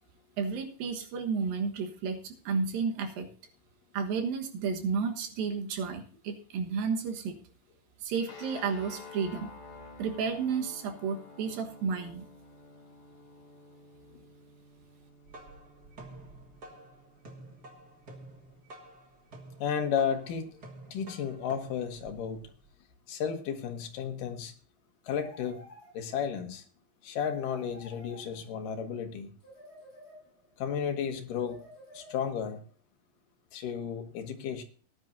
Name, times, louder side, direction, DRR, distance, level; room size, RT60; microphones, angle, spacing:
voice 1, 0.4-3.3 3.9-7.4 8.0-9.5 10.0-12.3, right 5 dB, 85° right, 4 dB, 3.2 m, -32 dB
sound 1, 8.3-18.6, left 4 dB, 45° left, 3.3 m, -51 dB
sound 2, 15.0-22.7, right 1 dB, 40° right, 1.6 m, -50 dB
voice 2, 19.6-20.6 20.9-22.4 23.1-24.5 25.1-25.7 25.9-26.6 27.0-29.3 30.6-31.6 31.9-32.6 33.5-34.6, left 7 dB, 75° left, 5 dB, 2.9 m, -33 dB
sound 3, 25.0-26.3 27.2-28.7 29.4-30.6 31.3-32.5, left 1 dB, 15° left, 7.3 m, -52 dB
18.0 x 10.5 x 2.7 m, 0.40 s
omnidirectional pair, 4.0 m